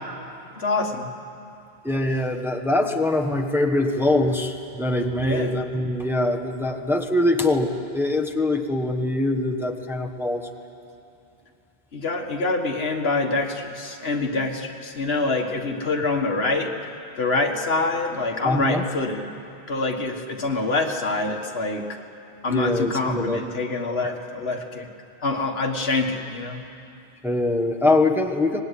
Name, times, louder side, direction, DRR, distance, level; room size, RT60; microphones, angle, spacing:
voice 1, 0.6-1.1 5.2-5.5 11.9-16.8 17.2-19.3 19.7-21.9 22.4-24.9 25.2-26.6, left 3 dB, 75° left, 3 dB, 1.8 m, -25 dB
voice 2, 1.8-10.5 18.4-18.8 22.5-23.4 24.0-24.1 27.2-28.6, left 2 dB, ahead, 2 dB, 1.2 m, -23 dB
24.5 x 19.5 x 9.8 m, 2.7 s
omnidirectional pair, 1.0 m